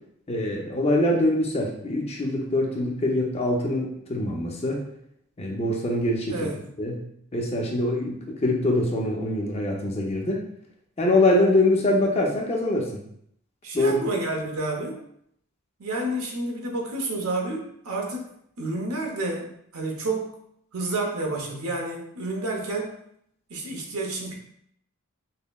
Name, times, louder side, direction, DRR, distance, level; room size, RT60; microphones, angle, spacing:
voice 1, 0.3-4.8 5.4-6.5 6.8-7.0 7.3-10.4 11.0-13.0 13.7-14.0, left 1 dB, 30° left, 0 dB, 0.5 m, -24 dB
voice 2, 6.3-6.6 13.6-15.0 15.8-18.3 18.6-19.5 19.7-20.3 20.7-22.9 23.5-24.3, right 2 dB, 90° right, 0 dB, 0.8 m, -29 dB
5.4 x 2.1 x 2.3 m, 0.71 s
head